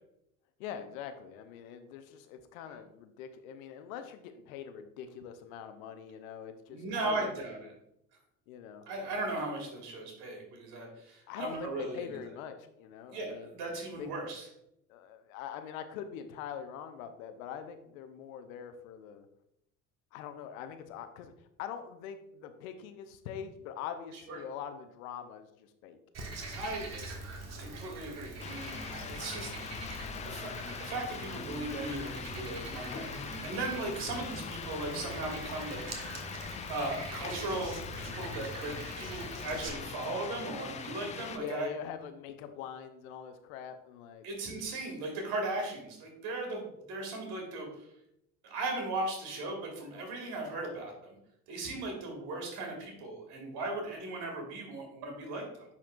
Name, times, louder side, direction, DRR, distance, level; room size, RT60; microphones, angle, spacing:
voice 1, 0.6-7.8 8.5-8.8 11.3-13.6 14.0-14.1 14.9-19.3 20.1-26.0 26.2-27.1 41.4-44.3, left 8 dB, 65° left, 9 dB, 0.8 m, -43 dB
voice 2, 6.7-7.6 8.9-12.1 13.1-14.5 24.3-24.4 26.5-26.9 27.6-29.5 30.2-36.2 36.7-41.7 44.2-47.9 48.4-51.2 51.5-55.6, right 2 dB, 55° right, 1 dB, 2.3 m, -37 dB
Frog, 26.1-39.7, right 2 dB, 35° right, 1.5 m, -44 dB
sound 1, 28.4-41.4, left 7 dB, 20° left, 0.3 m, -42 dB
10.0 x 4.3 x 2.5 m, 0.80 s
figure-of-eight pair, 60°, 45 cm